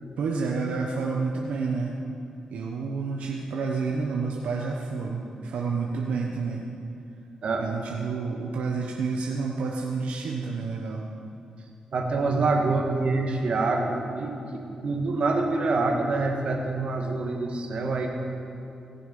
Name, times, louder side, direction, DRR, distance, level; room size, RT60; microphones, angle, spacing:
voice 1, 0.2-2.0 2.5-6.6 7.6-11.0, right 4 dB, 85° right, -1 dB, 0.9 m, -29 dB
voice 2, 7.4-7.9 11.9-18.1, right 3 dB, 60° right, 1 dB, 1.8 m, -26 dB
18.0 x 6.9 x 5.4 m, 2.7 s
cardioid pair, 75°, 2 cm